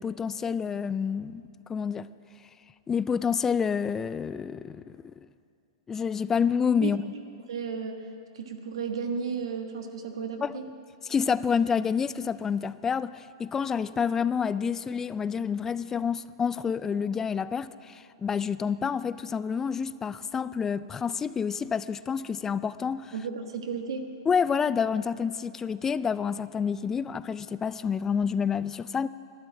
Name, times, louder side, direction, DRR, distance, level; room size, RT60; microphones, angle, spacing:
voice 1, 0.0-1.4 1.7-2.1 2.9-5.2 5.9-7.0 10.4-10.6 11.0-23.1 24.3-29.1, left 6 dB, 15° left, 0.3 m, -28 dB
voice 2, 7.5-10.6 23.1-24.1, right 6 dB, 75° right, 1.4 m, -34 dB
12.0 x 9.4 x 8.7 m
hypercardioid pair, 125°, 3 cm